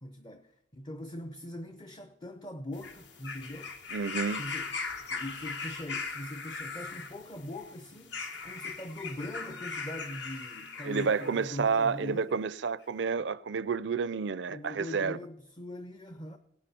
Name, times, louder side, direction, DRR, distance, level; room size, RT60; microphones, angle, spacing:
voice 1, 0.0-3.8 4.3-4.7 5.1-12.3 14.5-16.4, left 1 dB, 25° left, 0.6 m, -41 dB
sound 1, 2.7-11.4 12.3-12.4, left 4 dB, 65° left, 1.6 m, -39 dB
voice 2, 3.9-4.4 10.8-15.2, right 5 dB, 70° right, 0.5 m, -30 dB
17.5 x 10.5 x 4.3 m
head